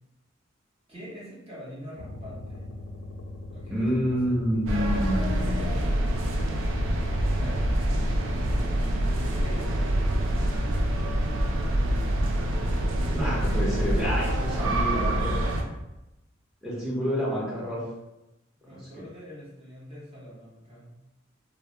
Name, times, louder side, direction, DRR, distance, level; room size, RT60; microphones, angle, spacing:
voice 1, 0.9-2.7 3.5-4.4 7.3-7.6 9.3-9.9 14.4-15.6 18.6-20.9, equal, 30° right, -7 dB, 0.9 m, -43 dB
sound 1, 2.0-8.7, left 2 dB, 70° left, 0.3 m, -41 dB
voice 2, 3.7-5.6 13.1-15.3 16.6-17.8 18.7-18.9, equal, 5° right, -8 dB, 0.7 m, -28 dB
sound 2, 4.7-15.6, right 1 dB, 80° right, 0.3 m, -26 dB
2.2 x 2.0 x 2.8 m, 0.95 s
head